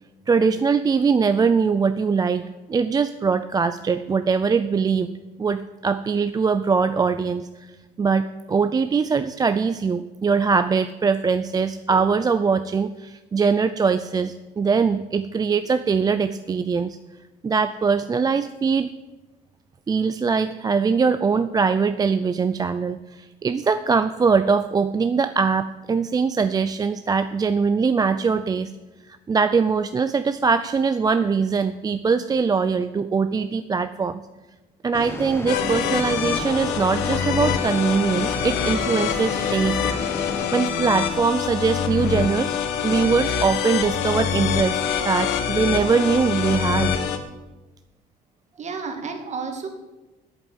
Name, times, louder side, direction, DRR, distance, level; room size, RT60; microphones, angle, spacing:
voice 1, 0.3-5.1 5.4-7.7 8.0-17.0 17.4-18.9 19.9-28.7 29.1-34.2 34.8-39.8 40.2-42.6 42.8-44.8 45.0-46.9, right 5 dB, 25° right, 11 dB, 0.4 m, -22 dB
sound 1, 34.9-40.5, left 2 dB, 15° left, 1.0 m, -34 dB
sound 2, 35.5-47.2, left 7 dB, 85° left, 1.1 m, -25 dB
voice 2, 48.6-49.7, right 4 dB, 45° right, 5 dB, 2.1 m, -31 dB
8.6 x 7.7 x 8.2 m, 1.1 s
cardioid pair, 110°, 17 cm